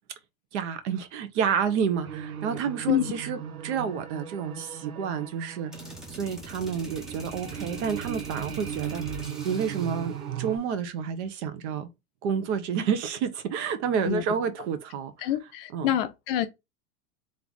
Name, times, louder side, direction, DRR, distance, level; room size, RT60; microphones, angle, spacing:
voice 1, 0.5-5.7 6.1-9.0 9.4-11.9 12.2-15.3 15.7-15.9, right 7 dB, 50° right, 1.0 m, -29 dB
sound 1, 2.0-10.6, right 8 dB, 80° right, 1.1 m, -38 dB
sound 2, 5.7-10.2, equal, ahead, 0.6 m, -43 dB
voice 2, 15.2-16.5, left 11 dB, 40° left, 0.6 m, -26 dB
3.6 x 3.4 x 4.0 m
supercardioid pair, 150°, 43 cm